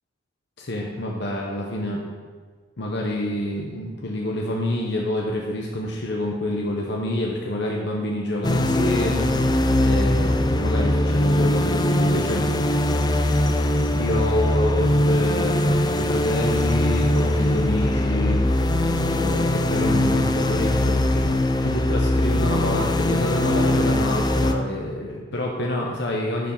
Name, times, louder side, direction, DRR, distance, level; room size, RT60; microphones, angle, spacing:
voice 1, 0.6-2.0 2.8-9.3 9.8-12.5 13.6-18.9 19.2-21.2 21.6-26.5, left 1 dB, 60° left, -1 dB, 1.0 m, -27 dB
sound 1, 8.4-24.5, left 1 dB, 20° left, 0.4 m, -21 dB
11.0 x 5.2 x 5.3 m, 1.5 s
head